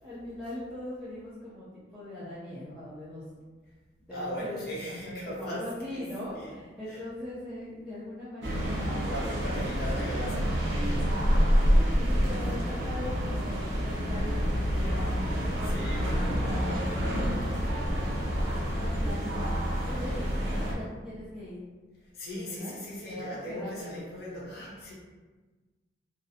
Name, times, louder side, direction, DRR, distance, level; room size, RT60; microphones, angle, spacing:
voice 1, 0.0-3.2 4.1-9.6 11.3-15.2 15.9-17.4 18.5-19.5 19.8-21.6 22.4-22.7 23.0-24.1, left 1 dB, ahead, -13 dB, 0.5 m, -40 dB
voice 2, 4.1-6.1 6.3-6.6 6.9-7.0 9.1-11.3 12.4-20.0 22.1-24.9, equal, 55° left, -5 dB, 0.7 m, -41 dB
sound 1, 8.4-20.7, equal, 70° right, 0.5 m, -28 dB
2.4 x 2.0 x 2.7 m, 1.3 s
head